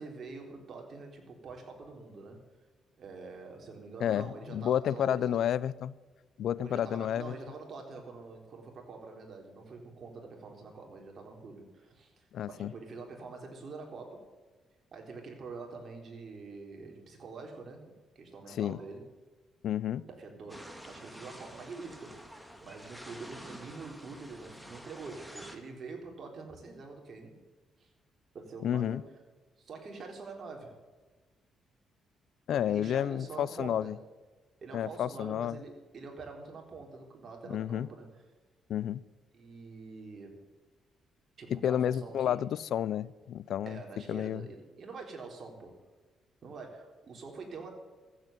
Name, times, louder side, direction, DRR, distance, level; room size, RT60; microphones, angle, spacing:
voice 1, 0.0-2.4 3.0-5.3 6.6-14.3 14.9-19.1 20.1-22.2 22.6-27.4 27.8-27.9 28.3-29.1 29.6-30.8 32.5-34.0 34.6-38.1 39.3-40.5 41.4-42.4 43.7-45.8 46.4-47.7, right 4 dB, 50° right, 2 dB, 3.8 m, -45 dB
voice 2, 4.0-5.9 6.4-7.3 12.3-12.7 18.5-18.8 19.6-20.0 28.6-29.0 32.5-34.0 34.7-35.6 37.5-37.9 38.7-39.0 41.5-43.8 44.1-44.5, left 10 dB, 70° left, 20 dB, 0.5 m, -31 dB
sound 1, 20.5-25.6, equal, ahead, 2.0 m, -49 dB
14.5 x 8.1 x 9.1 m, 1.3 s
cardioid pair, 90°, 0 cm